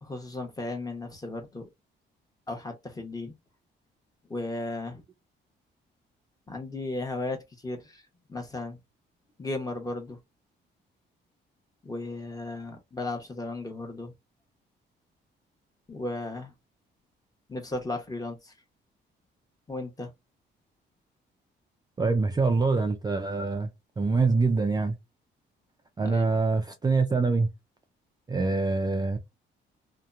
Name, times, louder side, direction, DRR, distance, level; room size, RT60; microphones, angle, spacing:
voice 1, 0.0-1.7 2.5-3.3 4.3-5.0 6.5-8.8 9.4-10.2 11.8-14.1 15.9-16.5 17.5-18.5 19.7-20.1 26.0-26.3, left 2 dB, 20° left, 0.9 m, -35 dB
voice 2, 22.0-23.7 24.0-25.0 26.0-27.5 28.3-29.2, right 3 dB, 20° right, 0.4 m, -25 dB
2.8 x 2.1 x 2.4 m
cardioid pair, 90°, 20 cm